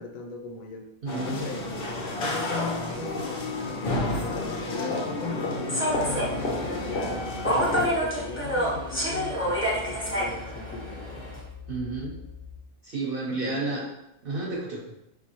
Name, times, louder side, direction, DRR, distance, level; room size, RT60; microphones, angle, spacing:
voice 1, 0.0-0.9 1.2-4.1 4.7-7.3 7.6-11.1 13.3-13.9, left 4 dB, 85° left, 4 dB, 1.0 m, -37 dB
voice 2, 1.0-1.5 11.7-12.2 12.8-13.8 14.2-14.8, right 3 dB, 50° right, -3 dB, 0.8 m, -31 dB
sound 1, 1.1-7.9, left 2 dB, 55° left, 0.7 m, -31 dB
Human voice / Subway metro underground, 5.7-11.4, equal, 10° left, 0.8 m, -29 dB
sound 2, 5.8-12.7, left 6 dB, 35° left, 0.4 m, -43 dB
5.5 x 2.6 x 2.8 m, 0.85 s
omnidirectional pair, 1.4 m